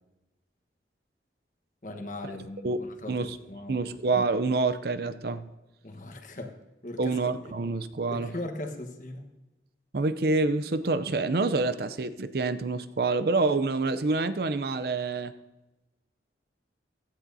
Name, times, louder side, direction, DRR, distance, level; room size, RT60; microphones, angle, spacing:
voice 1, 1.8-3.9 5.8-6.5 6.8-7.2 7.4-7.5 8.1-9.3, left 1 dB, 45° left, 5 dB, 1.2 m, -39 dB
voice 2, 3.7-5.5 7.0-8.3 9.9-15.3, right 3 dB, 55° right, 13 dB, 0.5 m, -27 dB
16.5 x 13.0 x 2.7 m, 1.0 s
head